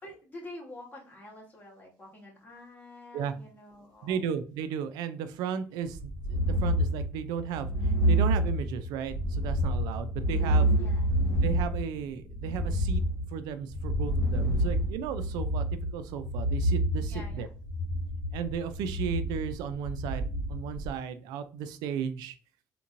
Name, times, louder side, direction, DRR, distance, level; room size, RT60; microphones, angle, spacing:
voice 1, 0.0-4.2 10.8-11.3 17.1-17.5, left 1 dB, 25° left, -3 dB, 1.9 m, -47 dB
voice 2, 4.0-7.7 8.1-10.7 11.4-13.0 13.3-15.6 15.9-17.5 18.3-22.3, right 8 dB, 80° right, 11 dB, 0.4 m, -35 dB
sound 1, 5.9-20.9, right 1 dB, 40° left, 1.4 m, -28 dB
3.6 x 2.9 x 2.5 m, 0.37 s
supercardioid pair, 85°, 7 cm